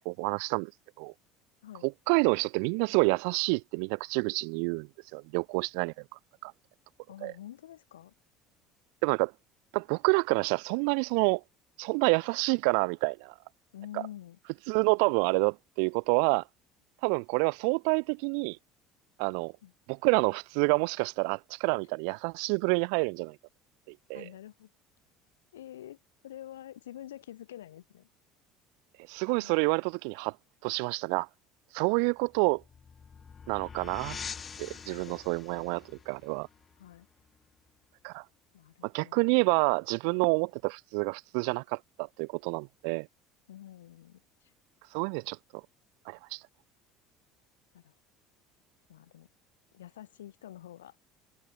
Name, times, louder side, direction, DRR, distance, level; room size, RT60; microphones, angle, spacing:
voice 1, 0.1-0.7 1.0-1.1 1.8-5.9 6.4-6.5 7.2-7.3 9.0-9.3 9.7-11.4 11.8-13.3 14.7-16.4 17.0-18.6 19.2-19.5 19.9-23.4 23.9-24.2 29.1-30.3 30.6-31.3 31.7-32.6 33.5-34.2 34.6-36.5 38.0-38.2 38.8-43.1 44.9-45.4 46.1-46.4, right 40 dB or more, 70° right, 0.5 m, -28 dB
voice 2, 7.1-8.1 13.7-14.4 19.6-19.7 24.1-24.7 25.5-28.1 29.4-29.6 34.8-35.2 36.8-37.1 38.5-39.2 43.5-44.5 47.7-47.9 48.9-49.3 49.7-51.0, left 12 dB, 85° left, 3.2 m, -47 dB
sound 1, 32.2-37.6, left 6 dB, 35° left, 4.0 m, -45 dB
hypercardioid pair, 70°, 0 cm